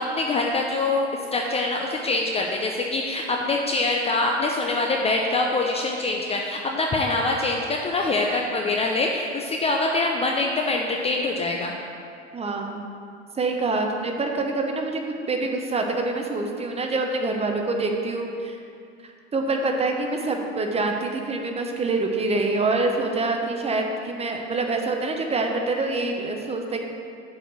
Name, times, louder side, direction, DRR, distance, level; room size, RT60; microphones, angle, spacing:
voice 1, 0.0-11.7, left 2 dB, 15° left, 0 dB, 0.5 m, -24 dB
voice 2, 12.3-12.8 13.3-15.0 15.3-18.5 19.0-26.8, right 3 dB, 15° right, 3 dB, 0.9 m, -26 dB
6.9 x 4.8 x 6.9 m, 2.4 s
figure-of-eight pair, 85°, 35 cm